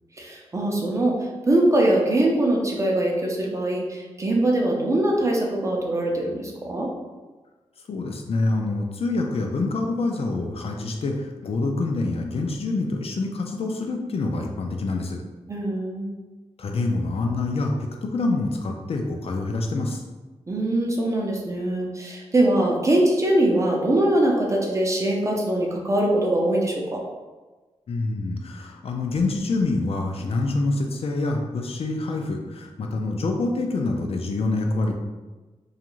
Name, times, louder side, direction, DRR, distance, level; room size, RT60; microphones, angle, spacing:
voice 1, 0.2-1.1 1.5-6.9 15.5-16.1 20.5-27.0, right 1 dB, 25° right, -1 dB, 0.5 m, -22 dB
voice 2, 7.9-15.2 16.6-20.0 27.9-34.9, left 2 dB, 60° left, 2 dB, 0.4 m, -26 dB
2.5 x 2.4 x 3.0 m, 1.2 s
wide cardioid pair, 115°, 12 cm